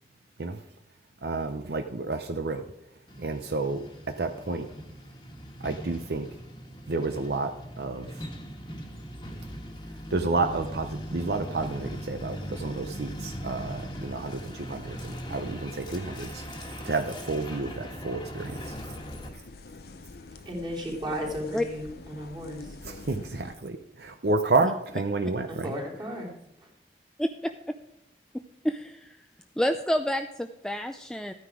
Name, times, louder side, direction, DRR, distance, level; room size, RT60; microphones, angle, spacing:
voice 1, 1.2-2.6 3.2-4.7 5.6-6.3 6.9-8.3 10.1-18.8 22.8-25.8, right 3 dB, 65° right, 7 dB, 0.7 m, -30 dB
Truck, 3.1-19.3, equal, 25° left, 1.5 m, -40 dB
sound 1, 18.5-23.6, left 3 dB, 60° left, 0.6 m, -46 dB
voice 2, 20.4-22.8 25.5-26.4, equal, 25° right, -3 dB, 3.2 m, -34 dB
voice 3, 27.2-27.7 28.6-29.2 29.6-31.3, equal, 5° left, 6 dB, 0.4 m, -29 dB
13.5 x 9.6 x 4.9 m, 0.81 s
head